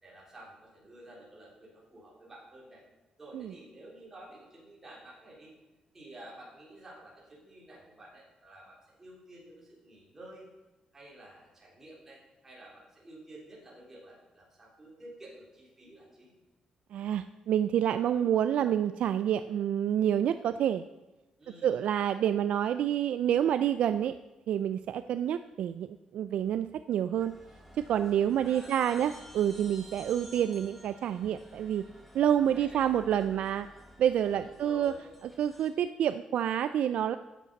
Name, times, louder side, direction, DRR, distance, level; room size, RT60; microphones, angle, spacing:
voice 1, 0.0-2.8 3.2-5.5 5.9-10.5 10.9-16.4 21.4-21.8 28.4-29.0 32.5-32.9 34.4-35.2, right 1 dB, 15° right, -5 dB, 3.7 m, -51 dB
voice 2, 16.9-20.9 21.6-24.1 24.5-27.3 27.9-31.8 32.1-33.7 34.0-34.9 35.4-37.2, right 10 dB, 65° right, 10 dB, 0.3 m, -28 dB
sound 1, 27.2-35.7, equal, ahead, 1.4 m, -53 dB
13.0 x 8.4 x 5.3 m, 1.1 s
cardioid pair, 180°, 2 cm